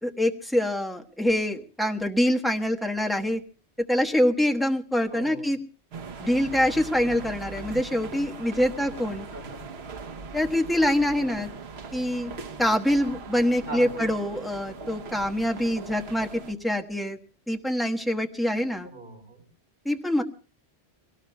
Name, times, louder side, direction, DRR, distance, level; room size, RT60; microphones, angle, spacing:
voice 1, 0.0-3.4 3.9-5.6 6.2-9.3 10.3-11.5 11.9-12.3 12.6-17.2 17.5-18.9 19.8-20.2, left 1 dB, ahead, 4 dB, 1.1 m, -25 dB
voice 2, 5.1-5.5 9.1-9.6 11.1-11.5 13.7-14.2 18.9-19.4, right 2 dB, 55° right, 0 dB, 4.3 m, -40 dB
sound 1, 5.9-16.5, right 4 dB, 75° right, 1.2 m, -40 dB
24.5 x 18.0 x 2.2 m, 0.36 s
omnidirectional pair, 1.1 m